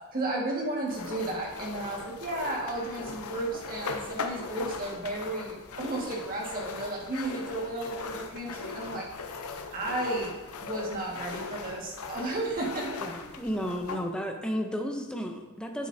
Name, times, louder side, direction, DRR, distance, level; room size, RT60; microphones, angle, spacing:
voice 1, 0.1-9.1 9.7-10.3 10.6-13.0, right 2 dB, 40° right, -3 dB, 1.7 m, -33 dB
sound 1, 0.9-14.1, left 4 dB, 85° left, 0.6 m, -39 dB
voice 2, 13.0-15.9, equal, 5° left, 3 dB, 0.6 m, -33 dB
9.5 x 7.4 x 2.7 m, 1.3 s
head